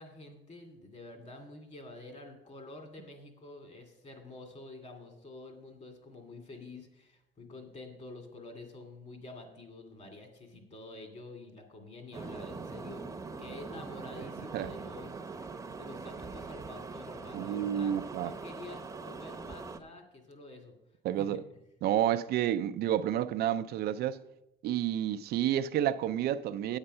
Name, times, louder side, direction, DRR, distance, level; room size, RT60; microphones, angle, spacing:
voice 1, 0.0-13.1 13.4-15.2 15.8-20.8 21.1-21.4, left 2 dB, 40° left, 2.5 m, -48 dB
sound 1, 12.1-19.8, right 4 dB, 20° right, 0.8 m, -42 dB
voice 2, 17.3-18.3 21.0-21.4 21.8-24.2 24.6-26.8, right 11 dB, 70° right, 0.5 m, -30 dB
8.8 x 8.8 x 5.5 m
cardioid pair, 110°, 17 cm